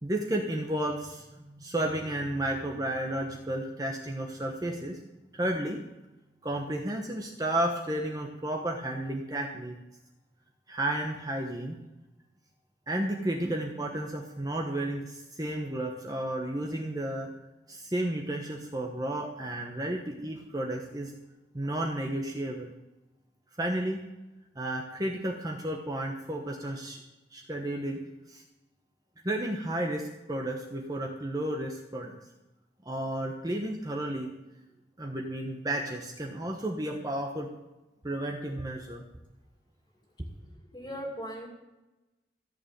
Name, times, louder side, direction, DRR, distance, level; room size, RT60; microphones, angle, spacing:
voice 1, 0.0-5.0 5.3-5.8 6.4-9.8 10.7-11.8 12.9-17.3 17.7-21.1 21.5-22.7 23.6-24.0 24.5-27.0 27.3-28.0 28.3-28.4 29.2-32.2 32.8-34.3 35.0-37.5 38.0-39.0, right 1 dB, 20° right, 1 dB, 1.1 m, -32 dB
voice 2, 40.4-41.5, equal, 25° left, 0 dB, 2.4 m, -39 dB
14.5 x 6.9 x 9.0 m, 1.0 s
head